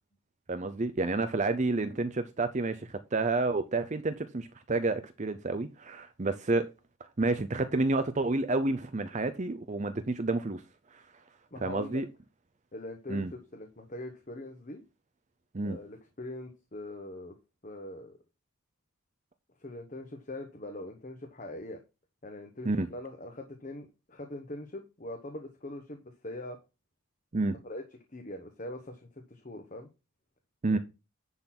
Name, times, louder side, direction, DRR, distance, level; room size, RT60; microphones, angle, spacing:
voice 1, 0.5-6.7 7.2-10.6 10.9-11.0 11.6-12.1 13.1-13.3 15.5-15.8 22.7-22.9 27.3-27.6 30.6-30.8, right 2 dB, 30° right, 0.5 m, -29 dB
voice 2, 11.5-12.0 12.7-14.8 15.6-17.4 17.6-18.2 19.6-21.8 22.2-26.6 27.6-27.8 28.1-29.9 30.7-30.8, left 1 dB, 35° left, 1.1 m, -42 dB
10.5 x 4.0 x 6.0 m
head